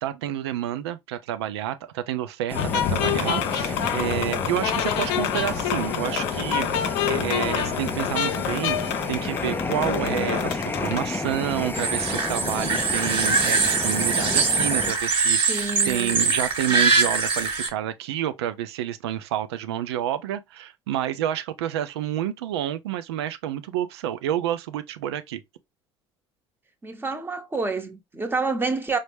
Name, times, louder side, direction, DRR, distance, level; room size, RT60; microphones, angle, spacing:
voice 1, 0.0-25.4, right 11 dB, 70° right, 0.5 m, -29 dB
sound 1, 2.5-11.1, left 9 dB, 60° left, 0.5 m, -27 dB
Fire, 2.5-14.9, left 3 dB, 15° left, 0.5 m, -31 dB
sound 2, 11.7-17.7, right 4 dB, 40° right, 1.2 m, -23 dB
voice 2, 15.5-16.4 16.7-17.1 26.8-29.0, right 3 dB, 15° right, 0.9 m, -29 dB
5.0 x 2.1 x 3.2 m
figure-of-eight pair, 60°, 14 cm